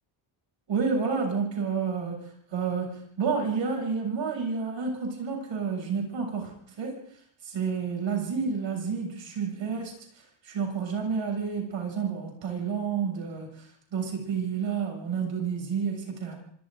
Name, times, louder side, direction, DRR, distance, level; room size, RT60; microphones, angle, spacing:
voice 1, 0.7-6.5 6.8-7.0 7.4-10.0 10.4-13.5 13.9-16.4, right 5 dB, 60° right, 1 dB, 7.3 m, -30 dB
29.0 x 25.5 x 3.9 m, 0.66 s
wide cardioid pair, 165°, 49 cm